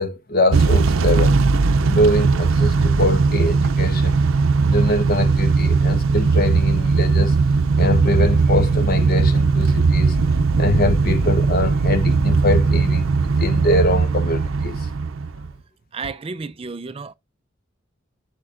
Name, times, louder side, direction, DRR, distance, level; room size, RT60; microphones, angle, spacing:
voice 1, 0.0-1.4 1.8-4.2 4.6-7.3 7.8-10.2 10.6-14.8, left 1 dB, 50° left, 1.0 m, -23 dB
Motor vehicle (road) / Engine starting / Accelerating revving vroom, 0.5-15.5, right 4 dB, 90° right, 0.5 m, -18 dB
voice 2, 15.9-17.1, right 4 dB, 30° right, 0.4 m, -32 dB
8.8 x 6.6 x 2.5 m
head